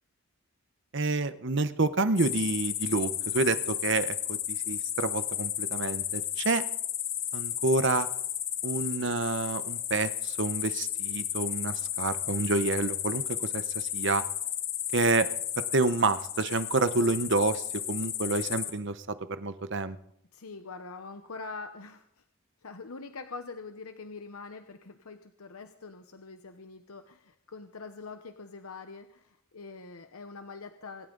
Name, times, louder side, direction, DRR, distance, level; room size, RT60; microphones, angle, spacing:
voice 1, 0.9-6.6 7.3-8.1 8.6-14.2 14.9-15.3 15.7-20.0, right 3 dB, 55° right, 12 dB, 0.9 m, -28 dB
sound 1, 2.2-18.7, left 11 dB, 60° left, 2.3 m, -33 dB
voice 2, 20.3-22.2 22.6-31.1, left 4 dB, 85° left, 7 dB, 1.0 m, -44 dB
26.0 x 13.0 x 4.0 m, 0.71 s
head